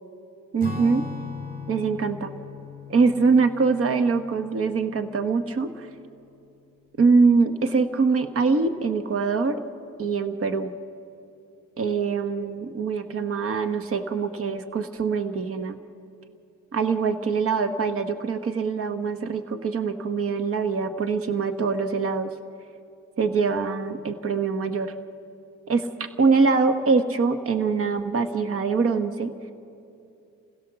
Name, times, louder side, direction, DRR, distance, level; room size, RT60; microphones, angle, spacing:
voice 1, 0.5-1.1 1.7-2.3 2.9-5.9 7.0-9.6 10.0-10.7 11.8-15.8 16.7-22.3 23.2-24.9 25.7-25.9 26.2-29.3, right 4 dB, 50° right, 9 dB, 1.3 m, -23 dB
Acoustic guitar / Strum, 0.6-5.4, left 4 dB, 25° right, 4.5 m, -38 dB
28.5 x 16.5 x 6.9 m, 2.7 s
cardioid pair, 90°, 30 cm